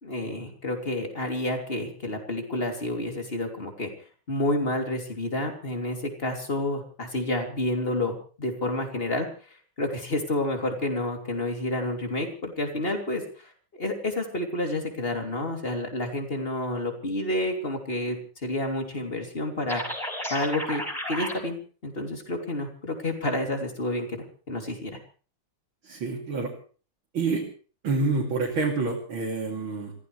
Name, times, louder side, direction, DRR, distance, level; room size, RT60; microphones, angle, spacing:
voice 1, 0.0-3.9 4.3-9.3 9.8-13.2 13.8-19.8 20.3-20.8 21.1-21.6 21.8-24.9, left 1 dB, 25° left, 3 dB, 3.2 m, -29 dB
sound 1, 19.7-21.3, equal, ahead, 5.2 m, -32 dB
voice 2, 25.8-26.5 27.1-27.4 27.8-29.9, right 3 dB, 70° right, -3 dB, 3.7 m, -27 dB
26.5 x 16.0 x 3.3 m, 0.39 s
omnidirectional pair, 2.3 m